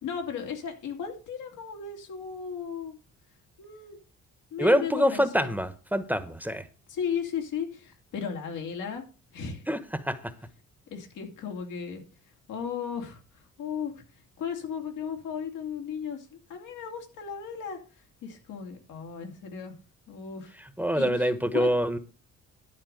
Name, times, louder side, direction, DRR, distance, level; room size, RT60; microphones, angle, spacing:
voice 1, 0.0-3.0 3.6-4.0 4.5-5.5 6.9-9.0 9.3-9.7 10.9-12.0 12.5-13.2 13.6-13.9 14.4-17.8 18.2-19.7 20.1-20.5 20.9-21.7, left 7 dB, 85° left, 3 dB, 2.9 m, -35 dB
voice 2, 4.6-6.6 9.7-9.8 10.1-10.2 20.8-22.0, equal, 5° right, 11 dB, 1.0 m, -25 dB
11.5 x 4.2 x 7.8 m, 0.35 s
cardioid pair, 90°, 30 cm